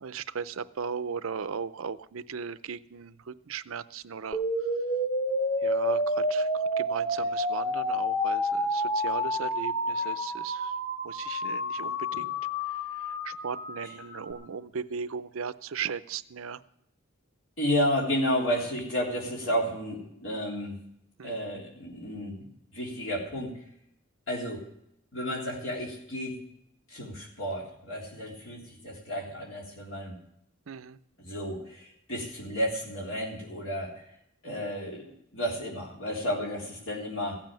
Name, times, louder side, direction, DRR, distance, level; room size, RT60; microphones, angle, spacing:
voice 1, 0.0-4.4 5.6-6.5 6.8-10.7 11.0-12.3 13.2-16.6 21.2-21.4 30.7-31.0, right 6 dB, 80° right, 15 dB, 0.6 m, -37 dB
sound 1, 4.3-14.3, equal, 35° left, 1.8 m, -29 dB
voice 2, 17.6-20.7 21.2-23.6 24.3-24.7 25.1-26.4 26.9-30.2 31.2-34.0 34.4-37.4, equal, 75° left, -3 dB, 3.6 m, -32 dB
15.5 x 7.6 x 9.1 m, 0.74 s
head